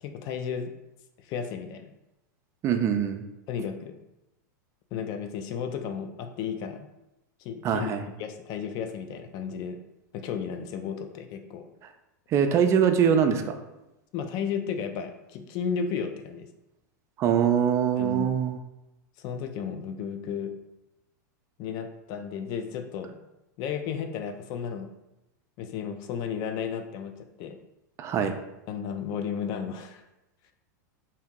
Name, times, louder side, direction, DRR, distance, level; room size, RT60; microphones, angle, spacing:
voice 1, 0.0-0.7 1.2-1.9 3.5-3.9 4.9-6.9 7.4-7.9 8.2-9.8 10.1-11.7 14.1-16.5 18.0-18.3 19.2-20.5 21.6-23.2 23.6-24.9 25.6-27.6 28.7-30.0, left 7 dB, 45° left, 7 dB, 0.4 m, -33 dB
voice 2, 2.6-3.2 7.6-8.0 12.3-13.6 17.2-18.6 28.0-28.3, right 8 dB, 30° right, 7 dB, 0.4 m, -23 dB
2.8 x 2.7 x 3.6 m, 0.92 s
supercardioid pair, 130°, 10 cm